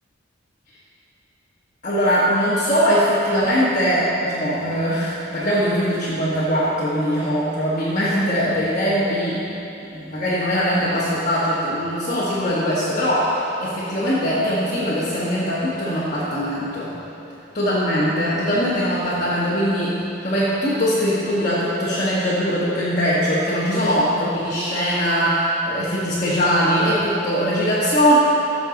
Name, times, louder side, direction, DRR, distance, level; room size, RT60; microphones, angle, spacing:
voice 1, 1.8-9.4 9.9-16.9 17.5-19.9 20.2-28.1, equal, 40° left, -10 dB, 1.4 m, -21 dB
13.5 x 6.5 x 3.9 m, 3.0 s
head